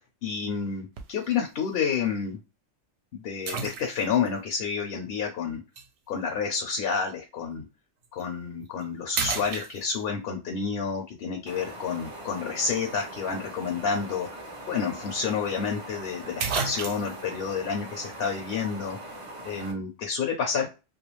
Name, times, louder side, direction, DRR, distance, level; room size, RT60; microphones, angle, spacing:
voice 1, 0.2-2.4 3.1-5.6 6.1-7.7 8.1-14.3 14.7-19.0 19.4-20.7, left 6 dB, 60° left, 2 dB, 0.7 m, -29 dB
sound 1, 1.0-1.3 1.9-2.0 3.5-4.3 5.8-5.9 8.0-8.2 8.7-8.8 9.1-10.2 14.3-14.4 14.7-14.8 15.9-16.0 16.4-17.3, right 5 dB, 70° right, 0.8 m, -32 dB
sound 2, 11.5-19.7, right 1 dB, 40° right, 0.4 m, -42 dB
2.4 x 2.2 x 3.0 m, 0.29 s
omnidirectional pair, 1.2 m